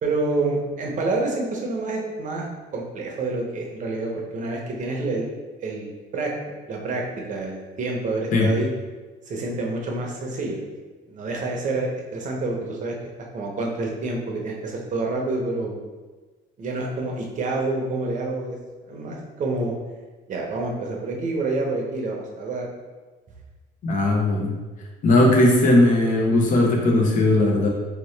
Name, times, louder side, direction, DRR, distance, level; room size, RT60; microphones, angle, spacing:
voice 1, 0.0-2.5 2.7-5.3 5.6-6.3 6.7-8.7 9.3-10.6 11.1-12.9 13.3-15.8 16.6-18.6 18.9-19.7 20.3-22.7, right 2 dB, 50° right, -1 dB, 0.8 m, -28 dB
voice 2, 23.8-24.5 25.0-27.7, left 1 dB, 50° left, 0 dB, 0.8 m, -18 dB
3.1 x 2.9 x 3.2 m, 1.3 s
cardioid pair, 110°, 17 cm